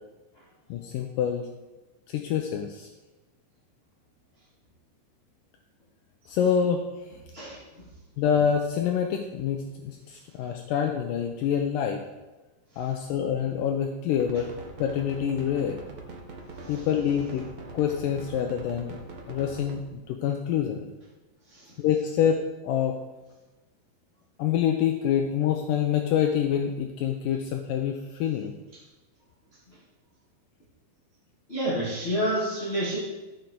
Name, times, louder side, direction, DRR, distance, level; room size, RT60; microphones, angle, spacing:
voice 1, 0.7-1.5 2.1-2.9 6.3-6.9 8.2-12.0 12.8-14.5 14.8-15.8 16.7-17.5 17.7-19.0 19.3-20.9 21.8-23.0 24.4-28.5, left 8 dB, 80° left, 3 dB, 2.0 m, -26 dB
voice 2, 7.3-7.9 16.6-16.9 21.5-21.7 31.5-33.0, right 1 dB, 20° left, -8 dB, 2.0 m, -29 dB
sound 1, 14.2-19.8, right 3 dB, 75° right, 1.2 m, -42 dB
14.5 x 6.2 x 4.6 m, 1.1 s
omnidirectional pair, 4.4 m